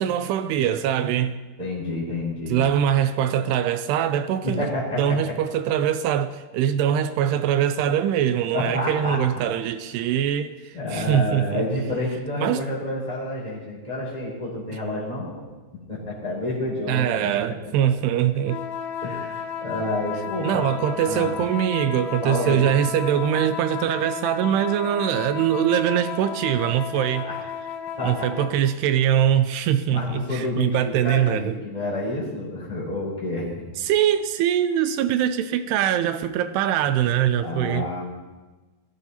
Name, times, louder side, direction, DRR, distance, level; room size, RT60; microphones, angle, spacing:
voice 1, 0.0-1.4 2.5-4.7 5.0-11.6 12.4-12.6 16.9-18.6 20.4-27.3 28.0-31.6 33.8-37.9, right 10 dB, 80° right, 2.5 m, -23 dB
voice 2, 1.6-2.6 4.4-5.3 8.5-9.2 10.0-10.1 10.7-15.4 15.9-17.3 19.0-20.8 21.1-21.3 22.2-22.6 27.0-27.4 28.0-28.3 29.9-33.5 37.4-38.0, left 1 dB, 10° right, 3.4 m, -29 dB
sound 1, 18.4-28.6, left 7 dB, 90° left, 1.6 m, -33 dB
21.0 x 15.0 x 2.8 m
omnidirectional pair, 4.9 m